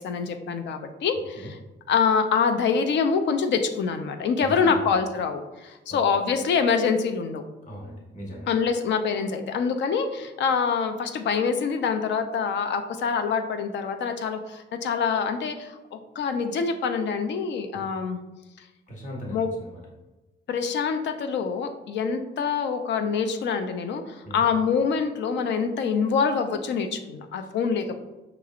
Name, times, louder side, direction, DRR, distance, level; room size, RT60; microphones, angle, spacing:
voice 1, 0.0-1.6 1.9-7.4 8.5-18.2 19.3-19.5 20.5-28.0, left 6 dB, 70° left, 8 dB, 0.5 m, -25 dB
voice 2, 4.4-4.9 5.7-6.0 7.7-8.5 17.7-17.9 18.9-19.8 24.2-24.4, equal, 40° left, -2 dB, 1.1 m, -39 dB
5.7 x 3.0 x 2.4 m, 1.1 s
wide cardioid pair, 150°, 19 cm